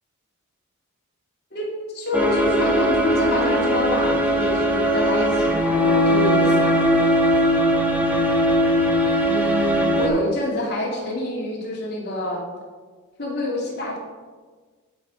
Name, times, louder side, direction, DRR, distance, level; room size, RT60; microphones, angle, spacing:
voice 1, 1.5-6.8 9.2-12.4 13.2-14.0, left 1 dB, 50° left, -3 dB, 2.7 m, -27 dB
sound 1, 2.1-10.1, equal, 10° right, 1.3 m, -19 dB
11.0 x 5.6 x 5.3 m, 1.4 s
head